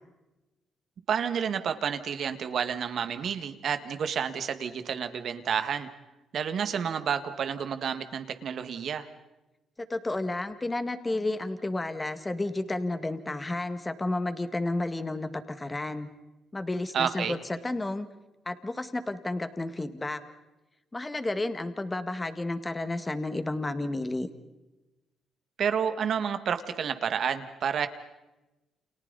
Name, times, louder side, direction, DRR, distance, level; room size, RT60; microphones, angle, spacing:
voice 1, 1.1-5.9 6.3-9.1 16.9-17.4 25.6-27.9, right 7 dB, 60° right, 9 dB, 1.8 m, -30 dB
voice 2, 9.8-16.1 16.5-18.1 18.5-20.2 20.9-24.3, left 2 dB, 20° left, 9 dB, 1.9 m, -31 dB
30.0 x 28.0 x 4.1 m, 1.0 s
cardioid pair, 90°, 0 cm